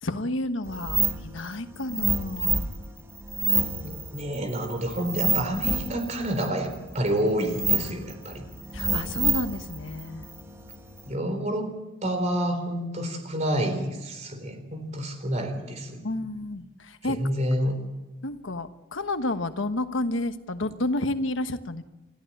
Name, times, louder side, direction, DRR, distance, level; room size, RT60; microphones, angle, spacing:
voice 1, 0.0-2.7 8.7-10.2 16.0-17.2 18.2-21.8, left 2 dB, 80° left, 9 dB, 1.3 m, -30 dB
sound 1, 0.7-11.1, right 3 dB, 15° right, 1.5 m, -29 dB
voice 2, 3.7-8.5 11.1-11.7 12.0-16.0 17.0-17.8, right 1 dB, 35° right, 6 dB, 3.9 m, -29 dB
29.0 x 14.0 x 8.6 m, 1.1 s
head